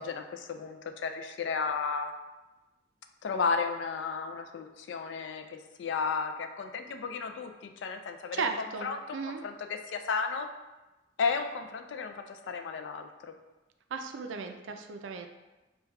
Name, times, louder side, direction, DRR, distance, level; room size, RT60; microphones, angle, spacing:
voice 1, 0.0-2.1 3.2-7.5 7.8-8.4 8.8-10.5 11.2-13.3, left 5 dB, 70° left, 6 dB, 0.4 m, -33 dB
voice 2, 8.3-9.4 13.9-15.3, right 5 dB, 80° right, 6 dB, 0.4 m, -35 dB
6.1 x 2.3 x 2.3 m, 1.1 s
head